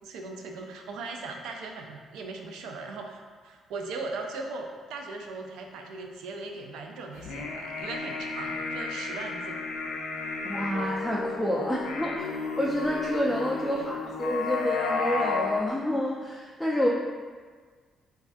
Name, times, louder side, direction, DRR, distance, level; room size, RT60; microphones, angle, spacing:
voice 1, 0.0-9.6 13.7-14.1, right 3 dB, 90° right, 2 dB, 0.3 m, -39 dB
sound 1, 7.2-15.6, left 4 dB, 90° left, 0.3 m, -32 dB
voice 2, 10.4-16.9, equal, ahead, -4 dB, 0.3 m, -29 dB
3.3 x 2.2 x 2.5 m, 1.5 s
cardioid pair, 90°, 0 cm